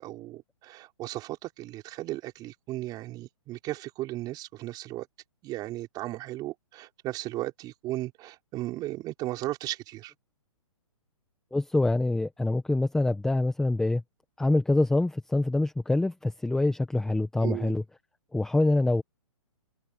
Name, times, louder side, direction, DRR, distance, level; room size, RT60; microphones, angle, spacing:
voice 1, 0.0-5.1 5.4-10.1 17.4-17.8, right 16 dB, 20° right, 5.4 m, -36 dB
voice 2, 11.5-14.0 14.4-17.8 18.3-19.0, left 2 dB, 5° left, 1.4 m, -25 dB
hypercardioid pair, 155°, 18 cm